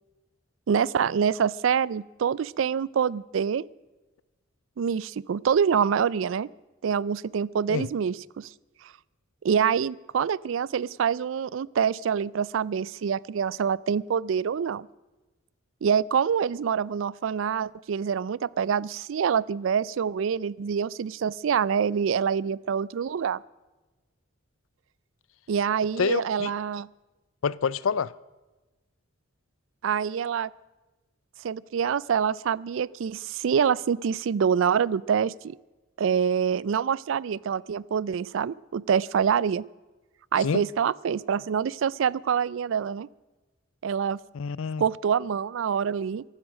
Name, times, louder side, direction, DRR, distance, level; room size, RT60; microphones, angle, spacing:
voice 1, 0.7-3.6 4.8-6.5 6.8-8.5 9.4-14.9 15.8-23.4 25.5-26.9 29.8-30.5 31.4-35.6 36.0-39.6 40.3-43.1 43.8-44.2 44.8-46.2, right 7 dB, 70° right, 0.4 m, -26 dB
voice 2, 26.0-26.5 27.4-28.1 40.4-40.6 44.3-44.8, left 6 dB, 80° left, 0.5 m, -27 dB
15.5 x 12.0 x 6.2 m
head